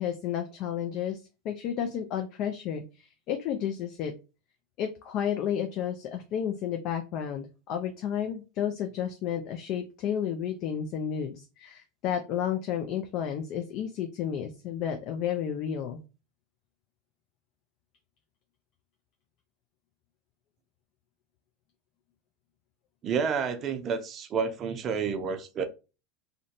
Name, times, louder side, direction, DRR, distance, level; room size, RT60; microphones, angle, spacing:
voice 1, 0.0-4.1 4.8-16.0, left 9 dB, 50° left, 0.4 m, -32 dB
voice 2, 23.0-25.6, right 6 dB, 40° right, 0.5 m, -29 dB
2.5 x 2.2 x 2.6 m
hypercardioid pair, 95°, 0 cm